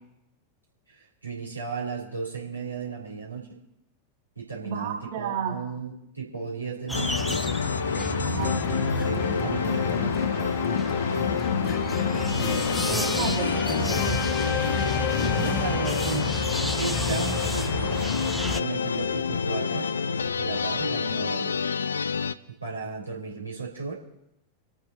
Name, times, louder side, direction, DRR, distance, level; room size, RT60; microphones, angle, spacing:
voice 1, 0.9-3.6 4.4-7.4 7.8-8.3 9.0-11.4 15.0-19.9 20.3-21.6 22.6-24.0, right 4 dB, 85° right, -5 dB, 4.0 m, -35 dB
voice 2, 4.6-5.6 8.2-8.6 12.3-14.3, right 7 dB, 50° right, -2 dB, 3.7 m, -33 dB
sound 1, 6.9-22.3, left 5 dB, 70° left, 0.5 m, -28 dB
sound 2, 6.9-18.6, left 1 dB, ahead, 0.4 m, -33 dB
sound 3, 8.4-16.3, left 6 dB, 45° left, 1.5 m, -30 dB
26.0 x 9.0 x 4.1 m, 0.81 s
figure-of-eight pair, 90°, 0 cm